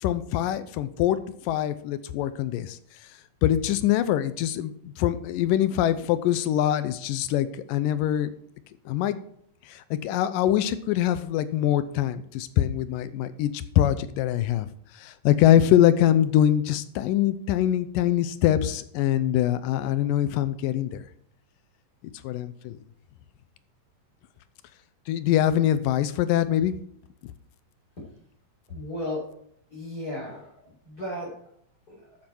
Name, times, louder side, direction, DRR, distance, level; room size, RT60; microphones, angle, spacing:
voice 1, 0.0-1.2 1.4-2.8 3.4-8.3 8.9-9.2 9.7-14.7 15.0-21.0 22.2-22.8 25.1-26.8 27.2-27.3, left 11 dB, 85° left, 13 dB, 2.4 m, -23 dB
voice 2, 28.7-29.4 29.7-31.5 31.9-32.1, left 1 dB, 25° left, -5 dB, 4.6 m, -35 dB
13.0 x 7.7 x 4.6 m, 0.66 s
omnidirectional pair, 3.8 m